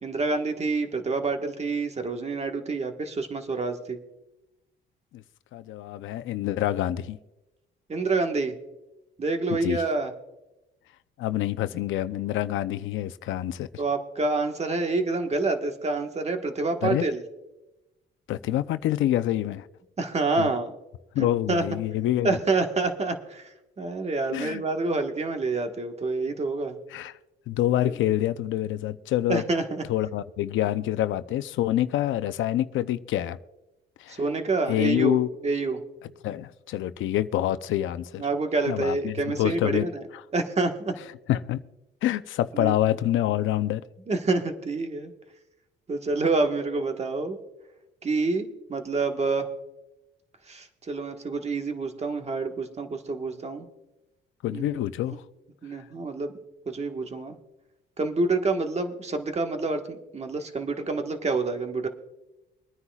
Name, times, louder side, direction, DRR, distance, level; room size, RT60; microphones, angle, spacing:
voice 1, 0.0-4.0 7.9-8.5 9.2-10.1 13.8-17.2 20.0-20.7 21.2-21.6 22.2-26.8 27.8-27.9 29.3-29.8 34.1-35.2 35.4-35.8 38.2-40.0 40.3-40.9 42.5-42.7 44.1-45.1 45.9-47.4 48.0-49.5 50.5-53.7 54.5-54.8 55.6-56.3 56.7-57.4 58.0-61.9, right 3 dB, 35° right, 1.4 m, -27 dB
voice 2, 5.5-7.2 9.6-9.8 11.2-13.7 16.8-17.1 18.3-19.7 20.4-20.5 21.1-22.4 24.3-24.6 26.9-27.1 27.5-29.4 29.9-33.4 34.0-34.2 34.7-35.3 36.2-38.3 38.7-39.9 41.3-41.6 42.0-43.8 54.4-55.2, left 13 dB, 80° left, 0.6 m, -26 dB
24.5 x 9.7 x 2.4 m
cardioid pair, 90°, 20 cm